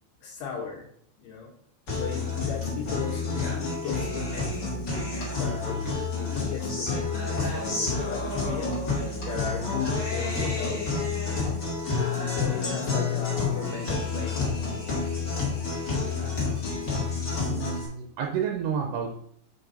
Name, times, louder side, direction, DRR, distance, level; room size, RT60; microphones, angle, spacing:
voice 1, 0.2-0.9 1.2-1.5 1.9-4.7 5.3-8.7 9.2-10.8 12.2-14.5, left 6 dB, 70° left, -2 dB, 3.1 m, -36 dB
Guitar, 1.9-17.9, left 4 dB, 35° left, 1.8 m, -29 dB
voice 2, 17.4-19.2, right 7 dB, 80° right, 2 dB, 2.5 m, -30 dB
6.9 x 5.2 x 4.1 m, 0.67 s
omnidirectional pair, 5.4 m